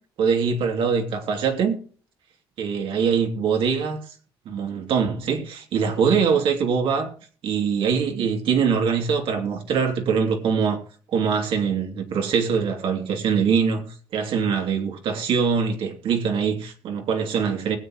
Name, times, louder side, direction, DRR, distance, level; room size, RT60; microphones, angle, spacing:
voice 1, 0.2-1.8 2.6-4.0 4.4-7.1 7.4-10.8 11.1-17.8, right 6 dB, 70° right, 2.9 m, -23 dB
20.5 x 8.3 x 3.1 m
cardioid pair, 100°, 9 cm